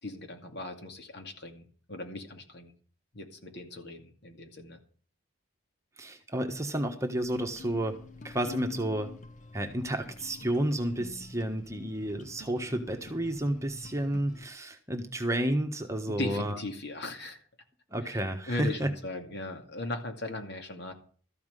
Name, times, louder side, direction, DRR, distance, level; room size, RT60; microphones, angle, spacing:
voice 1, 0.0-2.7 3.1-4.8 16.1-17.4 18.0-20.9, left 2 dB, 50° left, 5 dB, 2.4 m, -38 dB
voice 2, 6.0-8.0 8.2-9.1 9.5-16.6 17.9-18.9, right 1 dB, 15° right, 4 dB, 1.3 m, -31 dB
sound 1, 7.2-14.4, left 3 dB, 35° left, 1.0 m, -47 dB
14.0 x 6.0 x 9.1 m, 0.42 s
head